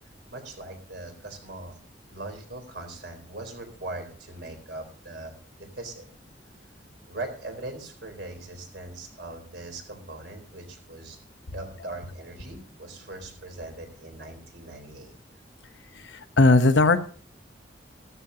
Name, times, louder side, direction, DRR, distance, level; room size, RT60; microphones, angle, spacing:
voice 1, 0.3-1.8 2.1-5.3 5.6-6.0 7.1-11.2 11.5-15.1, right 2 dB, 65° right, 4 dB, 3.9 m, -40 dB
voice 2, 15.9-17.0, left 2 dB, 75° left, 10 dB, 1.0 m, -19 dB
14.5 x 13.5 x 2.8 m, 0.43 s
head